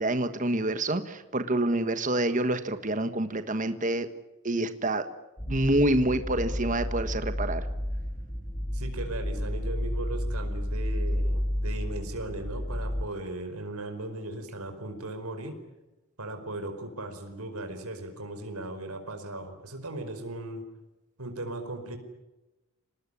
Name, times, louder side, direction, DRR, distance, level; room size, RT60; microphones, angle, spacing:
voice 1, 0.0-4.1 4.4-5.0 5.5-7.6, right 1 dB, 35° right, 9 dB, 1.4 m, -27 dB
sound 1, 5.4-13.0, equal, 15° left, 1.6 m, -31 dB
voice 2, 8.7-15.6 16.2-20.6 21.2-22.0, right 2 dB, 85° right, 6 dB, 4.9 m, -37 dB
26.0 x 19.5 x 10.0 m, 1.1 s
head